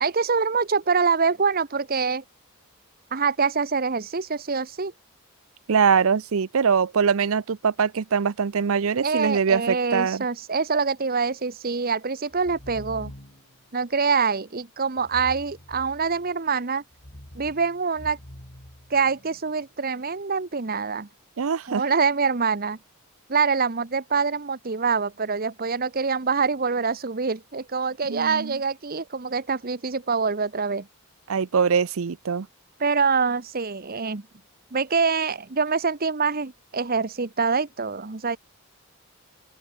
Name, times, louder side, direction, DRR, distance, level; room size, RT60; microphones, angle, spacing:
voice 1, 0.0-2.2 3.1-4.9 9.0-13.1 13.7-16.8 17.3-18.2 18.9-21.1 21.7-22.8 23.3-30.9 32.8-34.3 34.7-38.4, right 5 dB, 45° right, 1.0 m, -25 dB
voice 2, 5.7-10.2 21.4-21.8 28.1-28.6 31.3-32.5, right 6 dB, 70° right, 0.6 m, -22 dB
sound 1, 12.3-13.6 15.0-16.4 16.9-19.4, equal, 45° left, 3.5 m, -44 dB
open air
head